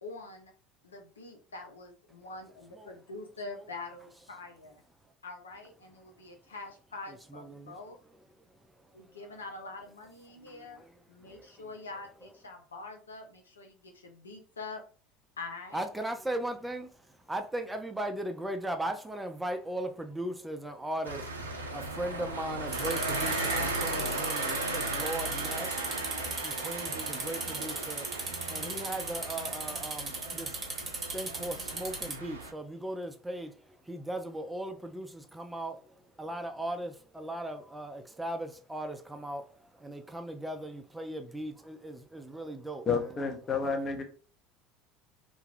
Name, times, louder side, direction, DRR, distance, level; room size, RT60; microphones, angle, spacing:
voice 1, 0.0-0.5 0.8-4.8 5.2-8.0 8.9-14.8 15.4-15.8, left 3 dB, 85° left, 0.5 m, -45 dB
voice 2, 7.3-7.8 8.9-9.0 10.4-11.6 15.7-43.1, right 1 dB, 10° right, 0.5 m, -38 dB
sound 1, 21.0-32.5, right 2 dB, 90° right, 0.4 m, -36 dB
sound 2, 22.7-32.2, right 3 dB, 30° right, 1.0 m, -38 dB
voice 3, 42.9-44.0, left 5 dB, 30° left, 0.8 m, -30 dB
2.5 x 2.3 x 3.3 m
figure-of-eight pair, 70°, 0 cm